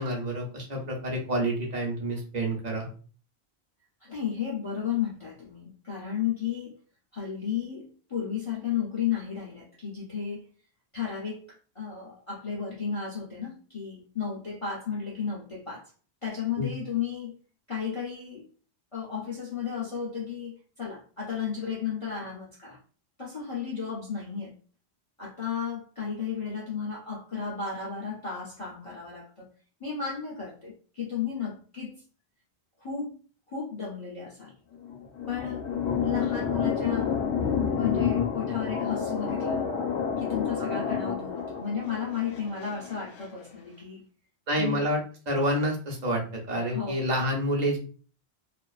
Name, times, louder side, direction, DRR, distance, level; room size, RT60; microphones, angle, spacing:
voice 1, 0.0-2.9 16.6-16.7 40.6-40.7 44.5-47.8, equal, 45° right, 0.8 m, -28 dB
voice 2, 4.0-6.8 7.1-10.5 10.9-11.4 11.8-15.9 16.2-17.3 17.7-18.5 18.9-22.8 23.2-24.5 25.2-29.5 29.8-32.0 32.8-33.2 33.5-34.5 35.3-35.7 36.0-37.2 37.8-39.8 40.2-44.0 44.6-44.8 46.7-47.1, left 7 dB, 40° left, 0.5 m, -33 dB
sound 1, 34.7-43.3, left 6 dB, 80° left, 0.9 m, -29 dB
2.4 x 2.4 x 2.3 m
omnidirectional pair, 1.1 m